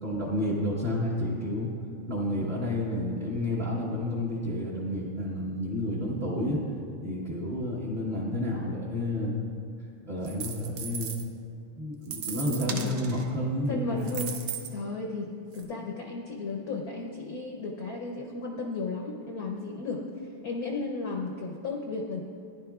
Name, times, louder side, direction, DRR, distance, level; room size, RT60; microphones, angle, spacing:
voice 1, 0.0-1.7 2.1-6.6 7.0-9.3 10.0-11.1 11.8-14.3, left 1 dB, 35° right, -7 dB, 1.1 m, -30 dB
sound 1, 10.2-11.2 12.1-13.2 14.0-14.7 15.6-15.7, right 7 dB, 85° right, 0.7 m, -36 dB
voice 2, 12.3-13.3 13.7-22.2, left 3 dB, 65° left, 1 dB, 0.9 m, -35 dB
15.5 x 10.5 x 2.3 m, 2.5 s
omnidirectional pair, 2.4 m